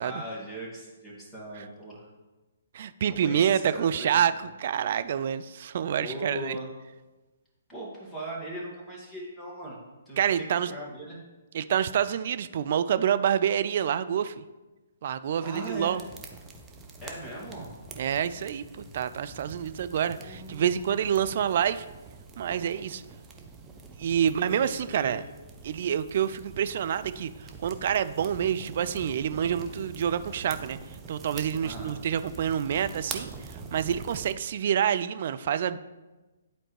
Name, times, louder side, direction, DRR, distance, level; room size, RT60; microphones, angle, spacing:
voice 1, 0.0-2.1 3.0-4.4 6.0-6.7 7.7-9.8 10.1-11.2 15.4-16.0 17.0-17.8 20.0-20.9 24.4-25.2 31.6-31.9, right 1 dB, 5° left, -5 dB, 2.1 m, -39 dB
voice 2, 2.7-4.3 4.6-6.6 10.2-10.7 11.5-14.4 15.0-16.0 18.0-18.6 18.9-21.8 22.4-23.0 24.0-25.2 25.6-30.8 31.1-33.3 33.7-35.8, right 9 dB, 45° right, 12 dB, 0.3 m, -27 dB
sound 1, 15.4-34.3, right 4 dB, 15° right, 0.7 m, -45 dB
sound 2, 16.1-21.6, left 1 dB, 25° left, 0.9 m, -53 dB
11.0 x 4.3 x 3.2 m, 1.1 s
figure-of-eight pair, 130°, 0 cm